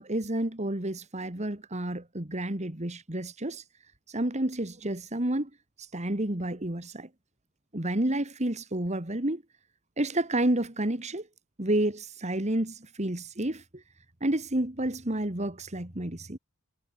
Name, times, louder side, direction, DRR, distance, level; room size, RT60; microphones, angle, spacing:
voice 1, 0.0-3.6 4.1-5.5 5.8-7.1 7.7-9.4 10.0-11.3 11.6-13.8 14.2-16.4, right 1 dB, 35° right, 2.3 m, -30 dB
head